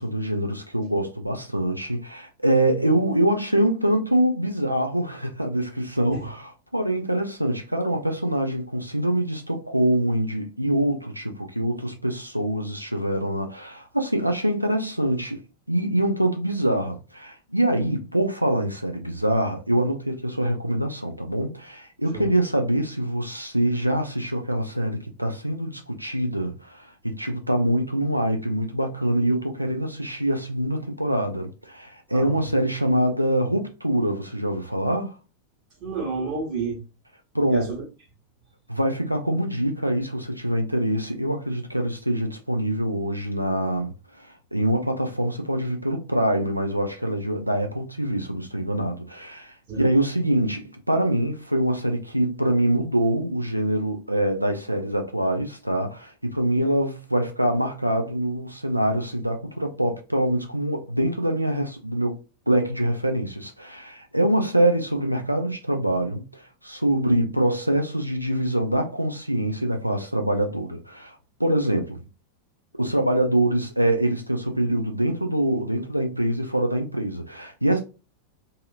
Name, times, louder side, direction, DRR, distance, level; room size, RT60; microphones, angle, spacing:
voice 1, 0.0-15.4 15.7-35.1 37.3-37.7 38.7-62.2 62.5-72.0 72.8-77.8, right 1 dB, 90° right, 0.4 m, -24 dB
voice 2, 35.8-36.8 37.5-37.8 49.7-49.9 67.0-67.2, right 4 dB, 40° right, 1.2 m, -30 dB
2.7 x 2.5 x 2.4 m
figure-of-eight pair, 90°, 0 cm